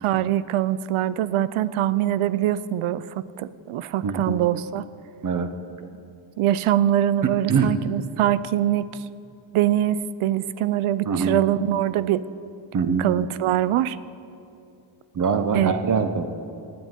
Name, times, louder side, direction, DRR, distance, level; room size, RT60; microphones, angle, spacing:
voice 1, 0.0-4.8 6.4-8.9 9.5-12.2 13.0-14.0 15.5-15.8, right 12 dB, 90° right, 16 dB, 0.6 m, -23 dB
voice 2, 4.0-4.4 5.2-5.5 7.2-7.7 11.0-11.4 12.7-13.1 15.1-16.3, right 5 dB, 40° right, 9 dB, 0.8 m, -23 dB
12.5 x 8.7 x 9.0 m, 2.6 s
wide cardioid pair, 170°, 48 cm